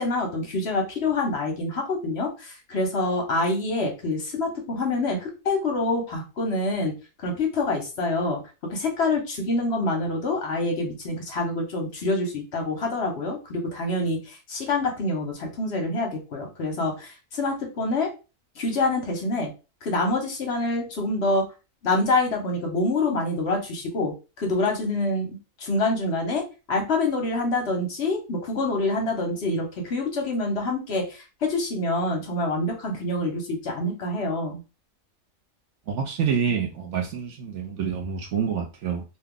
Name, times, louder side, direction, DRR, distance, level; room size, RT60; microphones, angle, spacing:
voice 1, 0.0-6.9 7.2-8.4 8.7-18.1 18.6-19.5 19.8-21.5 21.8-25.3 25.6-34.6, left 2 dB, 55° left, 0.9 m, -26 dB
voice 2, 35.9-39.0, right 7 dB, 65° right, 0.8 m, -27 dB
2.7 x 2.3 x 3.6 m
omnidirectional pair, 1.5 m